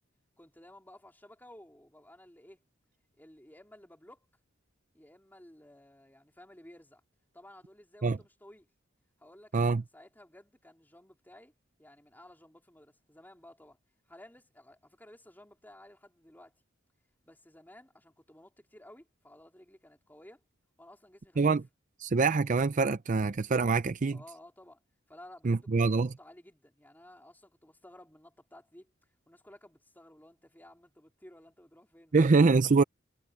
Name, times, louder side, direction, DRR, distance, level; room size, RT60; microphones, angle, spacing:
voice 1, 0.4-2.6 3.2-4.3 4.9-7.0 7.3-8.7 9.2-11.5 11.8-13.8 14.1-16.5 17.2-20.4 20.8-21.5 24.1-24.8 25.1-28.9 29.3-32.3, left 1 dB, 10° left, 3.9 m, -55 dB
voice 2, 22.0-24.2 25.4-26.1 32.1-32.8, right 4 dB, 40° right, 0.5 m, -24 dB
head